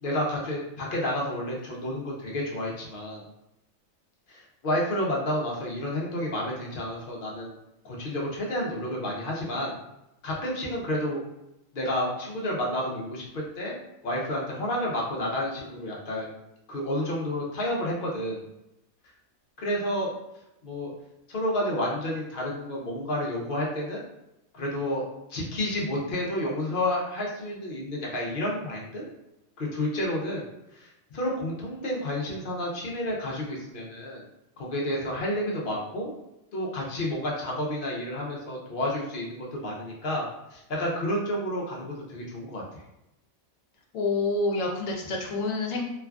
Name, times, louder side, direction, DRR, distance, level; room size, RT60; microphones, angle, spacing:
voice 1, 0.0-3.2 4.3-7.6 7.8-9.8 10.2-11.2 11.7-13.8 14.0-16.3 16.7-18.4 19.6-20.1 20.6-20.9 21.3-24.0 24.5-25.0 25.3-29.1 29.6-30.4 30.7-34.2 34.6-36.1 36.5-42.6, left 1 dB, 50° left, -3 dB, 0.7 m, -30 dB
voice 2, 43.9-45.8, left 3 dB, 75° left, 0 dB, 1.0 m, -27 dB
3.2 x 2.3 x 2.3 m, 0.89 s
omnidirectional pair, 1.4 m